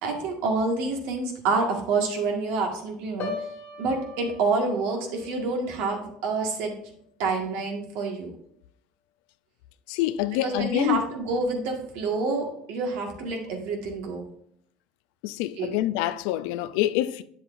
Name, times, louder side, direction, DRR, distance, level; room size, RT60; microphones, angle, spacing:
voice 1, 0.0-3.3 3.8-6.7 7.2-8.3 10.4-14.2 15.6-15.7, right 3 dB, 75° right, 1.6 m, -27 dB
Piano, 3.2-7.2 7.5-7.9, left 4 dB, 65° left, 1.5 m, -41 dB
voice 2, 9.9-11.0 15.2-17.2, left 14 dB, 80° left, 0.4 m, -26 dB
8.1 x 7.1 x 2.5 m
supercardioid pair, 95°, 3 cm